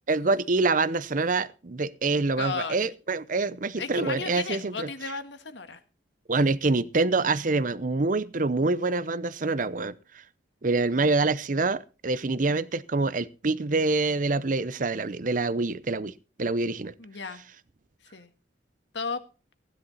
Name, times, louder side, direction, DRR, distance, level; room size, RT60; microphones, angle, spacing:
voice 1, 0.1-4.9 6.3-9.9 10.6-16.1 16.4-16.9, right 3 dB, 45° right, 0.7 m, -26 dB
voice 2, 2.4-2.8 3.8-5.8 17.0-17.4 18.1-18.3 18.9-19.2, left 4 dB, 75° left, 1.8 m, -34 dB
16.0 x 10.5 x 4.2 m
head